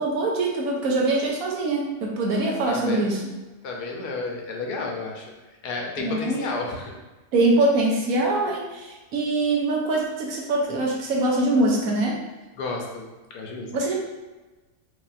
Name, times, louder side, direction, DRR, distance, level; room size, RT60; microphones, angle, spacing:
voice 1, 0.0-3.2 6.0-6.5 7.3-12.2 13.7-13.9, right 2 dB, 70° right, -1 dB, 1.0 m, -23 dB
voice 2, 2.7-3.2 3.6-5.3 5.6-7.0 12.6-13.1 13.3-13.7, left 3 dB, 75° left, 0 dB, 1.2 m, -31 dB
4.8 x 2.8 x 2.4 m, 1.2 s
omnidirectional pair, 1.7 m